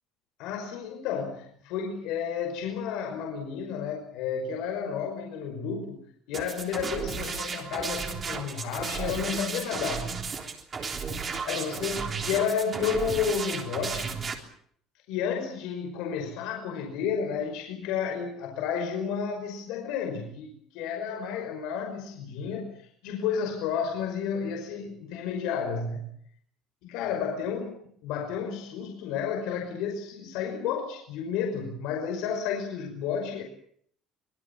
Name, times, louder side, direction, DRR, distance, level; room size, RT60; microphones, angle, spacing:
voice 1, 0.4-6.0 6.3-10.1 11.5-14.1 15.1-26.1 26.8-27.7 28.0-33.4, left 7 dB, 70° left, 3 dB, 5.5 m, -31 dB
sound 1, 6.3-14.3, right 5 dB, 25° right, 3.5 m, -34 dB
25.0 x 23.0 x 7.3 m, 0.64 s
cardioid pair, 180°, 0 cm